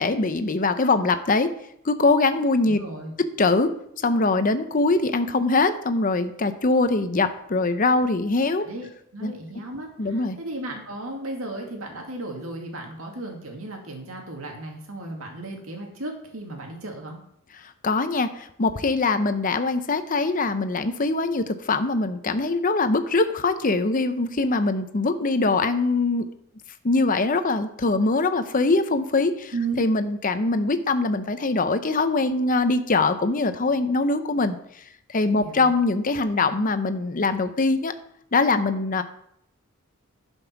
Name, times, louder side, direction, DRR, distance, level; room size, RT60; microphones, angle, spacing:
voice 1, 0.0-1.5 1.8-2.8 3.4-3.7 4.0-8.6 9.2-9.3 10.0-10.4 17.8-26.3 26.8-34.6 35.1-37.9 38.3-39.0, left 3 dB, 40° left, 10 dB, 0.7 m, -22 dB
voice 2, 2.7-3.1 8.6-17.2 29.5-29.8 35.3-35.7, right 2 dB, 75° right, 1 dB, 2.3 m, -35 dB
11.0 x 5.4 x 5.9 m, 0.72 s
head